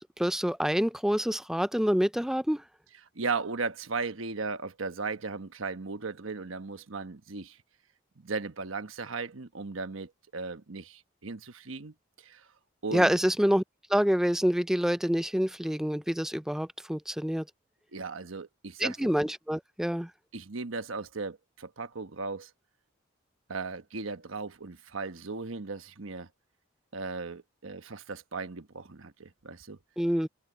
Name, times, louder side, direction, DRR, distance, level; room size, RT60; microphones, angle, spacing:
voice 1, 0.0-2.6 12.9-13.6 13.9-17.5 18.8-20.1 30.0-30.3, equal, ahead, 0.4 m, -27 dB
voice 2, 3.1-7.6 8.2-12.5 12.8-13.1 17.9-19.1 20.3-22.5 23.5-26.3 26.9-29.8, right 4 dB, 85° right, 1.2 m, -37 dB
head